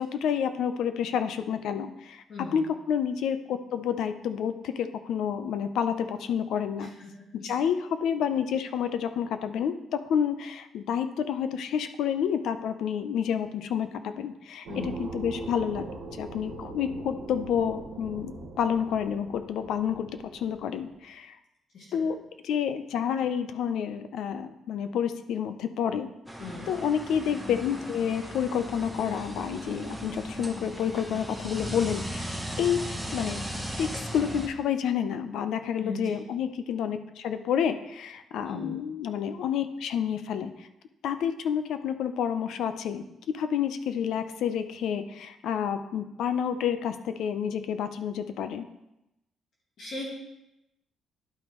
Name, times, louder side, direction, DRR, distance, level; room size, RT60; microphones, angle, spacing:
voice 1, 0.0-2.2 2.5-6.9 7.3-15.9 16.2-21.4 21.9-22.2 22.4-26.1 26.7-32.8 33.1-33.4 33.8-40.7 41.0-43.0 43.3-48.7, left 8 dB, 75° left, 10 dB, 0.5 m, -29 dB
voice 2, 2.3-2.6 7.0-7.1 7.4-7.5 14.7-14.9 21.7-22.1 26.4-26.7 35.8-36.2 38.5-38.8 49.8-50.1, left 2 dB, 50° left, -5 dB, 2.0 m, -38 dB
sound 1, 14.7-21.0, right 3 dB, 80° right, 1.3 m, -41 dB
sound 2, 26.3-34.5, equal, ahead, 0.8 m, -37 dB
11.5 x 5.1 x 3.1 m, 0.89 s
cardioid pair, 165°, 0 cm